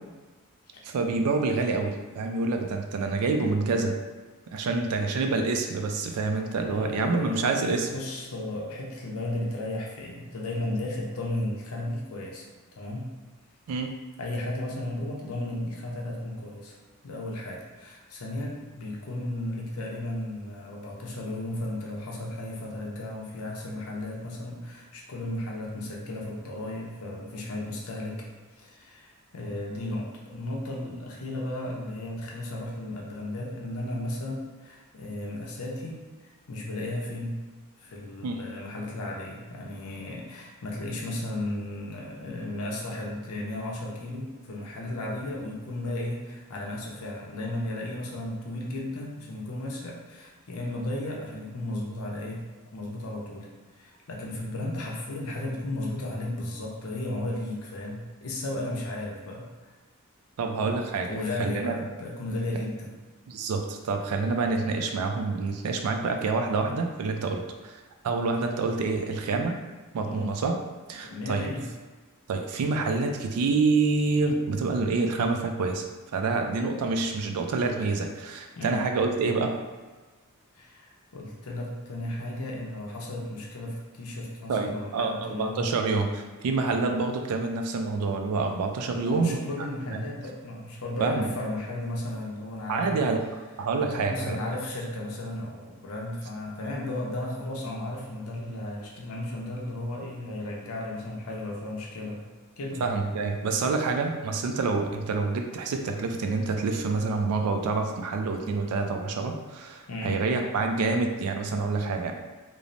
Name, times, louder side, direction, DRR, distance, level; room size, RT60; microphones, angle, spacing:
voice 1, 0.8-4.0 4.5-7.9 13.7-13.9 38.2-38.5 60.4-61.1 61.4-61.8 63.3-67.7 68.0-69.6 69.9-70.6 70.9-71.5 72.3-75.9 76.1-79.6 84.5-89.4 89.9-90.0 91.0-91.3 92.7-93.2 93.6-94.4 102.8-112.1, right 3 dB, 90° right, 4 dB, 0.4 m, -27 dB
voice 2, 6.7-12.5 12.7-13.1 14.2-16.8 17.0-28.3 28.6-36.0 36.5-37.4 37.8-53.5 53.8-59.5 60.6-63.0 67.2-67.4 70.0-70.3 71.0-71.6 78.6-78.8 80.5-85.7 88.9-93.1 93.8-102.3 102.6-102.8 109.9-110.2, left 1 dB, 70° left, -2 dB, 0.6 m, -34 dB
3.0 x 2.0 x 2.5 m, 1.3 s
head